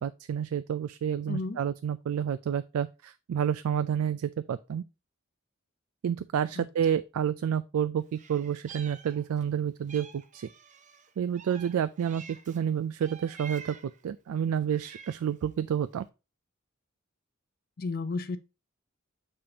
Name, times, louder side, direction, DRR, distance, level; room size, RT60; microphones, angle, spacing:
voice 1, 0.0-4.8 6.0-10.5 11.2-13.8 14.0-16.0, right 8 dB, 80° right, 0.3 m, -29 dB
voice 2, 1.3-1.6 6.6-6.7 17.8-18.4, left 3 dB, 45° left, 0.5 m, -32 dB
Meow, 8.1-9.5 9.9-12.6 13.0-14.0 14.6-15.4, right 6 dB, 35° right, 0.6 m, -49 dB
6.8 x 5.4 x 2.8 m
head